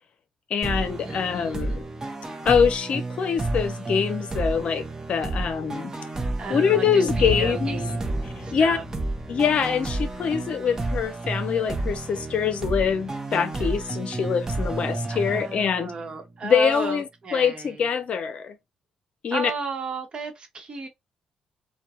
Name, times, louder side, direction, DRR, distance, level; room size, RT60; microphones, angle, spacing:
voice 1, 0.5-1.9 2.4-5.9 6.5-7.8 8.5-8.8 9.3-15.9 16.4-18.6 19.2-19.5, left 7 dB, 60° left, 0.5 m, -24 dB
sound 1, 0.6-16.1, right 2 dB, 25° right, 0.8 m, -31 dB
voice 2, 1.0-1.8 6.4-8.0 8.4-8.8 10.2-10.8 15.1-17.8 19.3-20.9, right 3 dB, 45° right, 1.0 m, -34 dB
Bowed string instrument, 7.2-13.7, left 4 dB, 5° left, 0.8 m, -40 dB
2.3 x 2.2 x 2.8 m
supercardioid pair, 65°, 2 cm